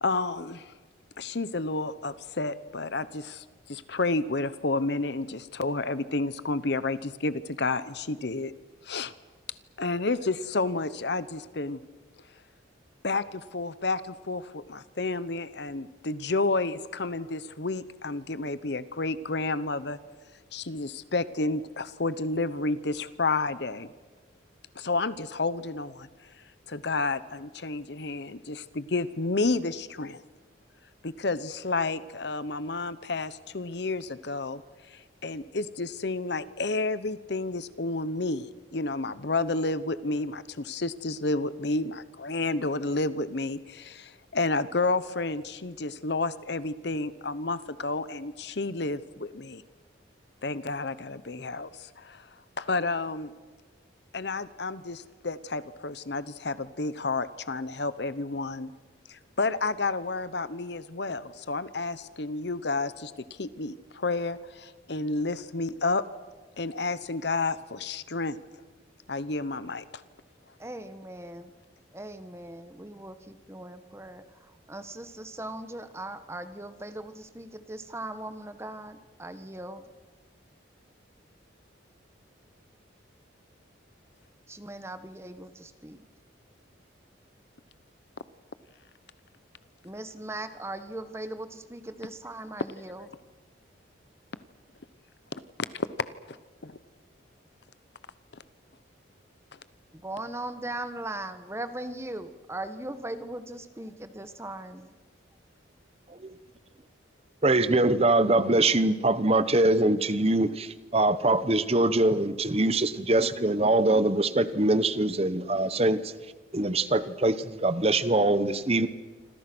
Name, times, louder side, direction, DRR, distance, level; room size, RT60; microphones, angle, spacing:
voice 1, 0.0-0.7 1.2-8.5 8.8-9.1 9.8-11.8 13.0-20.0 20.5-23.9 24.7-26.1 26.7-30.2 31.0-34.6 34.9-49.6 50.4-52.3 52.6-53.3 54.1-58.7 59.1-66.0 66.6-68.4 69.1-69.8 95.3-95.4 95.7-95.9 96.3-96.4 96.6-96.8, left 3 dB, 60° left, 15 dB, 0.9 m, -30 dB
voice 2, 70.6-71.5 71.9-74.2 74.7-79.8 84.5-86.0 89.8-93.0 100.0-104.9, right 1 dB, 15° right, 10 dB, 1.2 m, -39 dB
voice 3, 107.4-116.1 116.5-118.9, right 2 dB, 30° right, 13 dB, 1.1 m, -23 dB
27.5 x 26.5 x 6.2 m, 1.3 s
head